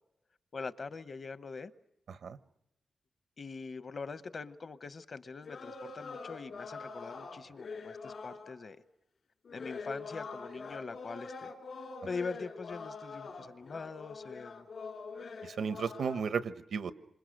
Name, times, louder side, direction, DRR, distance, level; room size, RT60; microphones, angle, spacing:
voice 1, 0.5-1.7 3.4-8.8 9.5-11.5 12.0-14.7, left 4 dB, 45° left, 0.9 m, -43 dB
sound 1, 5.4-8.5 9.5-16.2, left 4 dB, 70° left, 2.7 m, -44 dB
voice 2, 15.4-16.9, right 6 dB, 90° right, 1.1 m, -34 dB
27.5 x 27.0 x 6.5 m
wide cardioid pair, 130°, 0 cm